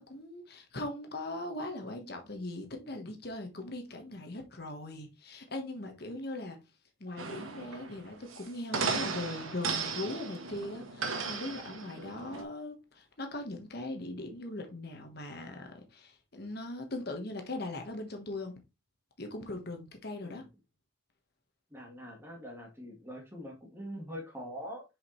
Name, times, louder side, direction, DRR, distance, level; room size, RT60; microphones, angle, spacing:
voice 1, 0.0-6.6 7.0-18.5 19.2-20.4, left 2 dB, 50° left, 1.3 m, -40 dB
sound 1, 7.2-12.4, right 4 dB, 90° right, 1.3 m, -36 dB
voice 2, 21.7-24.8, equal, 10° right, 1.6 m, -43 dB
6.9 x 5.1 x 3.2 m
head